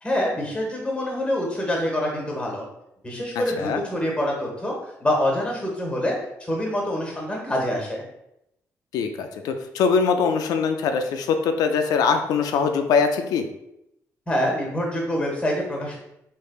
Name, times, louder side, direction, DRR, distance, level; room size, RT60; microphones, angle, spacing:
voice 1, 0.0-2.6 3.0-4.7 5.0-6.2 6.5-8.0 14.3-16.0, left 1 dB, 20° left, -1 dB, 1.2 m, -25 dB
voice 2, 8.9-13.5, left 5 dB, 80° left, 6 dB, 0.4 m, -22 dB
3.3 x 3.2 x 2.3 m, 0.83 s
cardioid pair, 75°, 6 cm